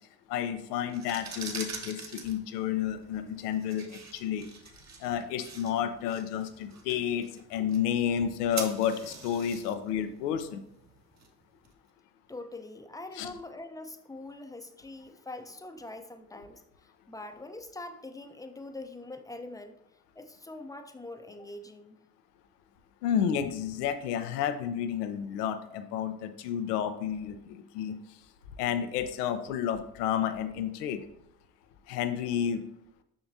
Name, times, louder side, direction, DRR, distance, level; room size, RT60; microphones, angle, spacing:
voice 1, 0.3-4.5 5.0-10.6 13.2-13.3 23.0-28.0 28.6-31.0 31.9-32.6, left 9 dB, 80° left, 9 dB, 0.7 m, -31 dB
sound 1, 0.8-11.7, right 4 dB, 35° right, 1.2 m, -45 dB
voice 2, 12.3-16.6 17.1-19.8 20.2-22.0, left 2 dB, 10° left, 7 dB, 0.7 m, -43 dB
7.4 x 5.8 x 2.7 m, 0.80 s
hypercardioid pair, 55°, 47 cm